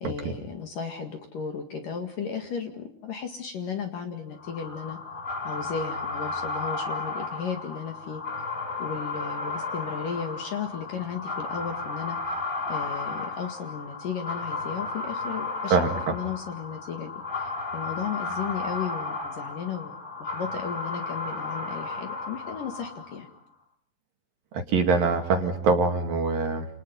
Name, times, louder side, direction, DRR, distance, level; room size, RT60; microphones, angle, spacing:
voice 1, 0.0-5.0 5.4-8.2 8.8-12.3 12.7-17.1 17.4-19.9 20.2-23.3, left 6 dB, 55° left, 6 dB, 3.0 m, -35 dB
sound 1, 4.4-23.3, left 3 dB, 15° left, 2.6 m, -34 dB
voice 2, 15.7-16.1 24.5-26.7, right 4 dB, 55° right, 4 dB, 3.4 m, -24 dB
29.5 x 28.5 x 5.6 m, 0.63 s
omnidirectional pair, 5.5 m